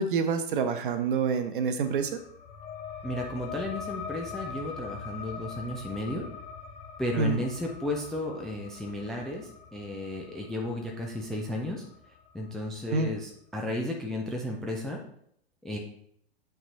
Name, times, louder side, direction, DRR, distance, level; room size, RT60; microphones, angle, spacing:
voice 1, 0.0-2.2 7.2-7.4 12.9-13.1, right 5 dB, 50° right, 9 dB, 0.9 m, -27 dB
sound 1, 1.8-13.0, left 6 dB, 20° left, 0.7 m, -43 dB
voice 2, 3.0-6.2 7.0-11.9 12.3-15.0 15.6-15.8, left 1 dB, ahead, 0 dB, 0.3 m, -33 dB
8.0 x 5.7 x 2.7 m, 0.67 s
figure-of-eight pair, 100°, 32 cm